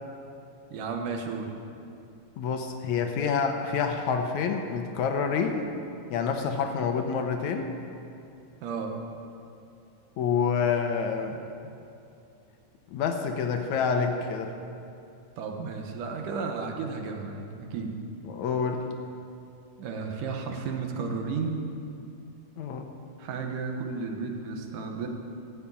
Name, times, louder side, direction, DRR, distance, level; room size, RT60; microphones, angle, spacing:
voice 1, 0.7-1.5 8.6-8.9 15.4-17.9 19.8-21.7 23.2-25.1, right 4 dB, 80° right, 2 dB, 2.8 m, -33 dB
voice 2, 2.4-5.7 6.1-7.7 10.2-11.4 12.9-14.5 18.3-18.8 22.6-22.9, left 6 dB, 70° left, 5 dB, 2.0 m, -27 dB
13.0 x 8.2 x 8.6 m, 2.7 s
omnidirectional pair, 3.6 m